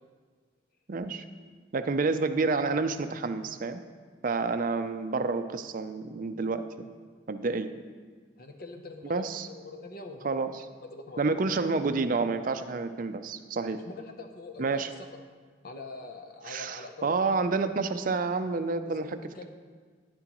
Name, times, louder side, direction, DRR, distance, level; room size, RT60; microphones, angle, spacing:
voice 1, 0.9-1.2 1.7-3.8 4.2-6.6 7.3-7.7 9.0-9.5 10.2-10.6 11.2-13.8 14.6-14.9 16.5-19.1, right 4 dB, 45° right, 10 dB, 0.4 m, -29 dB
voice 2, 8.4-10.3 10.9-11.3 13.7-15.1 15.6-17.2 18.9-19.4, left 3 dB, 50° left, 5 dB, 0.7 m, -44 dB
11.5 x 10.5 x 3.0 m, 1.6 s
head